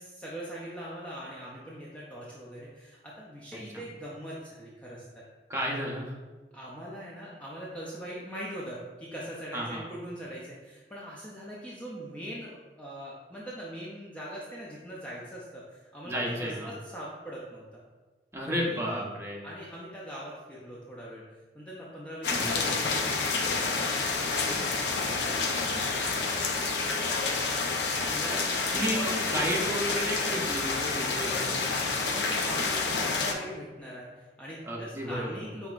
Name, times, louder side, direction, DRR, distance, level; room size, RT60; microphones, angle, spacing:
voice 1, 0.0-5.2 6.5-17.8 18.5-19.1 19.4-21.2 21.5-27.7 28.0-29.8 31.8-35.7, equal, 10° left, -6 dB, 0.5 m, -42 dB
voice 2, 5.5-6.1 9.5-9.8 16.0-16.7 18.3-19.4 22.2-22.6 28.7-31.6 34.6-35.4, equal, 15° right, -3 dB, 0.8 m, -32 dB
sound 1, 22.2-33.3, left 4 dB, 75° left, 0.5 m, -29 dB
6.0 x 3.4 x 2.4 m, 1.3 s
head